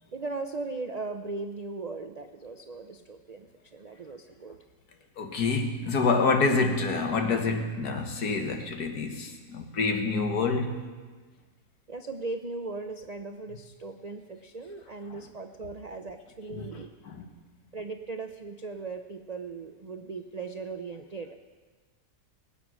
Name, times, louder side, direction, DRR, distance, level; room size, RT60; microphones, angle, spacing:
voice 1, 0.1-4.6 11.9-16.9 17.7-21.4, right 3 dB, 70° right, 6 dB, 0.3 m, -38 dB
voice 2, 5.2-10.8 15.1-15.2 16.5-16.7 17.1-17.2, left 4 dB, 80° left, 5 dB, 1.9 m, -27 dB
20.5 x 9.2 x 6.2 m, 1.4 s
omnidirectional pair, 1.7 m